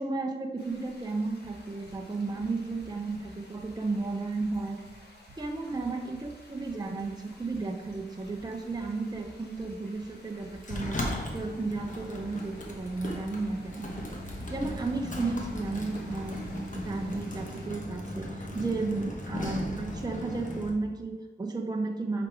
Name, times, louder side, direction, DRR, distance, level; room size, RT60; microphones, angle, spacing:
voice 1, 0.0-4.8 5.4-11.0 11.3-14.2 14.5-16.4 16.7-22.3, right 3 dB, 20° right, 2 dB, 0.6 m, -33 dB
sound 1, 0.6-17.7, left 1 dB, 65° left, 1.6 m, -55 dB
sound 2, 1.4-21.1, right 2 dB, 70° right, 0.7 m, -54 dB
Sliding door, 10.6-20.7, left 1 dB, 45° left, 1.1 m, -37 dB
5.2 x 4.8 x 4.8 m, 1.3 s
wide cardioid pair, 100°, 18 cm